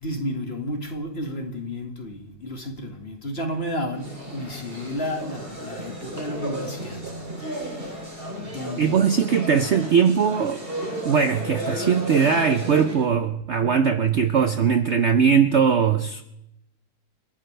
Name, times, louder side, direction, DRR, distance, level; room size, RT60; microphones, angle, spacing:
voice 1, 0.0-7.0 7.5-8.0 8.4-9.0, left 1 dB, 35° left, 2.1 m, -32 dB
sound 1, 3.9-13.1, right 1 dB, 30° right, 3.2 m, -34 dB
voice 2, 8.8-10.6 11.0-16.2, right 6 dB, 75° right, 0.6 m, -20 dB
30.0 x 12.0 x 3.3 m
omnidirectional pair, 2.1 m